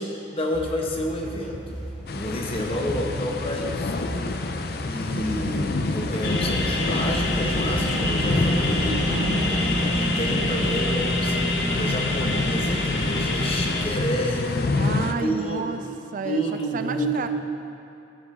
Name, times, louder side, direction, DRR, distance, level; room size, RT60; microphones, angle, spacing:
voice 1, 0.0-1.8 2.1-4.0 4.8-9.0 9.6-14.7 15.2-15.7 16.2-17.3, equal, 30° left, 0 dB, 1.0 m, -29 dB
sound 1, 0.5-9.9, right 1 dB, 5° left, 1.7 m, -36 dB
sound 2, 2.1-15.1, left 3 dB, 55° left, 0.5 m, -28 dB
sound 3, 6.2-13.9, left 1 dB, 80° left, 1.0 m, -26 dB
voice 2, 9.0-9.4 14.8-15.8 16.1-16.4 16.7-17.3, right 5 dB, 45° right, 8 dB, 0.3 m, -31 dB
14.5 x 6.1 x 3.7 m, 2.7 s
head